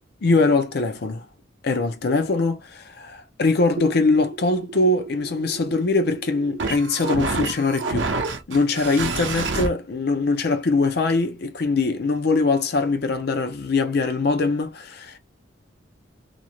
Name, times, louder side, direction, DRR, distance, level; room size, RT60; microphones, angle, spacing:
voice 1, 0.2-1.2 1.6-8.1 8.5-15.2, left 3 dB, 55° left, 0.5 m, -22 dB
sound 1, 3.8-9.7, right 3 dB, 70° right, 0.6 m, -29 dB
2.5 x 2.0 x 2.9 m
head